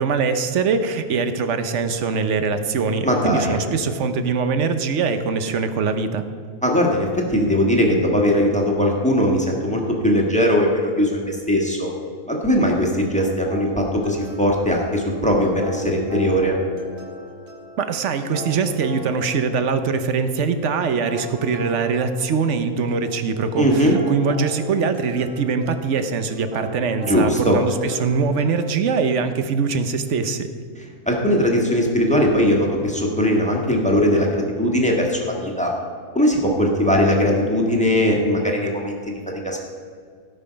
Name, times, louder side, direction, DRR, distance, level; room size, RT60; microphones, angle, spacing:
voice 1, 0.0-6.2 17.8-30.5, right 5 dB, 60° right, 9 dB, 1.0 m, -22 dB
voice 2, 3.0-3.6 6.6-11.9 12.3-16.6 23.6-24.0 27.0-27.6 31.1-35.7 36.1-39.6, equal, 5° left, -1 dB, 1.5 m, -20 dB
sound 1, 13.5-28.8, right 1 dB, 80° right, 2.4 m, -38 dB
17.0 x 5.7 x 5.1 m, 2.1 s
omnidirectional pair, 1.5 m